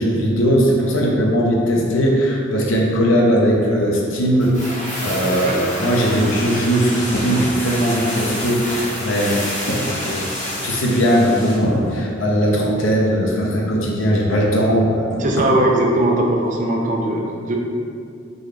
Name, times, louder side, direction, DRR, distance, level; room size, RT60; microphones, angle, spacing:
voice 1, 0.0-10.3 10.6-15.5, equal, 75° left, -2 dB, 0.8 m, -19 dB
sound 1, 4.4-11.7 11.9-12.0, equal, 40° left, 1.1 m, -28 dB
voice 2, 15.2-17.6, right 1 dB, 40° right, 0 dB, 0.5 m, -19 dB
3.9 x 3.7 x 3.3 m, 2.5 s
head